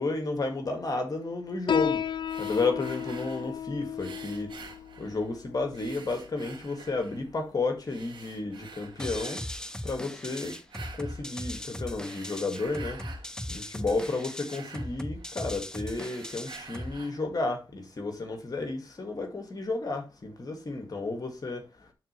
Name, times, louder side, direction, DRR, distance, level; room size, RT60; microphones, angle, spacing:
voice 1, 0.0-2.0 2.4-4.5 5.0-9.4 9.8-10.6 11.0-13.0 13.5-21.6, left 3 dB, 50° left, 2.1 m, -32 dB
Piano, 1.7-8.7, left 9 dB, 70° left, 0.5 m, -35 dB
sound 1, 2.2-3.6 4.0-5.4 5.7-7.3 7.8-9.4 10.1-11.3 11.9-13.3 13.7-15.5 15.8-17.3, right 5 dB, 70° right, 3.0 m, -48 dB
sound 2, 9.0-17.0, left 1 dB, 10° left, 0.9 m, -38 dB
11.0 x 4.2 x 3.2 m
cardioid pair, 65°, 9 cm